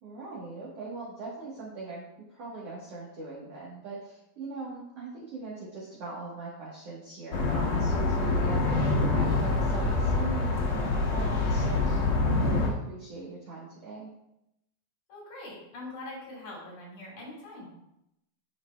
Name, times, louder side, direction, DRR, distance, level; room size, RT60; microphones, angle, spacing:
voice 1, 0.0-14.1, right 3 dB, 60° right, -6 dB, 1.6 m, -41 dB
sound 1, 7.3-12.7, left 3 dB, 70° left, 1.8 m, -26 dB
voice 2, 15.1-17.7, left 2 dB, 50° left, -6 dB, 3.8 m, -43 dB
11.5 x 5.3 x 2.3 m, 0.83 s
omnidirectional pair, 4.5 m